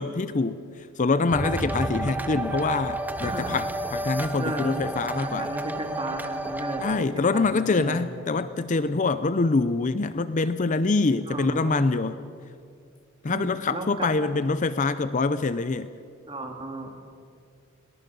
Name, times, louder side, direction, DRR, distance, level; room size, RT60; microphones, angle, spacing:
voice 1, 0.0-5.5 6.8-12.2 13.2-15.9, left 3 dB, 35° left, 13 dB, 0.5 m, -25 dB
sound 1, 1.3-7.0, right 1 dB, 10° right, 0.8 m, -31 dB
voice 2, 3.2-3.5 4.4-4.9 5.2-6.8 7.3-8.2 11.3-11.9 13.3-14.2 16.3-17.0, right 1 dB, 25° right, 3 dB, 2.2 m, -34 dB
22.5 x 18.5 x 6.9 m, 2.3 s
head